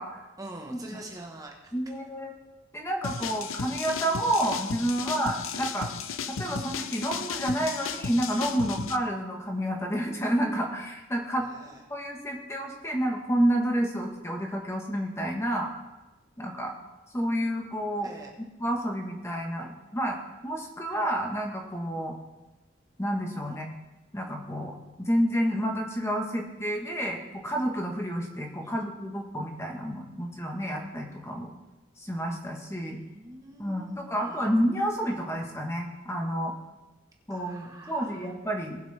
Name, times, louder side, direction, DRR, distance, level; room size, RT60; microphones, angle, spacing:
voice 1, 0.4-1.7 5.0-5.2 11.4-11.8 18.0-18.3 23.4-23.6 28.6-28.9 32.8-34.5 37.3-38.3, right 2 dB, 20° right, 0 dB, 1.2 m, -46 dB
voice 2, 1.7-2.3 2.7-5.9 6.3-15.7 16.4-16.7 17.1-18.1 18.6-20.2 20.4-22.2 23.0-23.7 24.1-31.5 32.0-33.0 33.6-36.5 37.3-38.8, equal, 15° left, 1 dB, 1.3 m, -29 dB
sound 1, 3.0-9.0, left 6 dB, 90° left, 0.6 m, -35 dB
19.5 x 7.9 x 3.4 m, 1.1 s
head